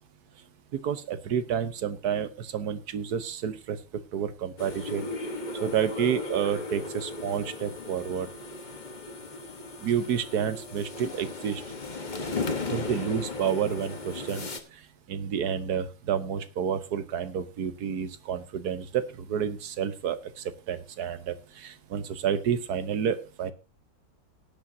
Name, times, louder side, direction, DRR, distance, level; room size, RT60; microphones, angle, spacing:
voice 1, 0.7-3.8 4.1-5.1 5.6-8.3 9.8-11.6 12.7-14.5 15.1-20.2 20.7-23.5, right 8 dB, 60° right, 12 dB, 1.4 m, -29 dB
sound 1, 4.6-14.6, left 3 dB, 30° left, 1.1 m, -36 dB
19.5 x 8.6 x 2.8 m, 0.29 s
omnidirectional pair, 2.0 m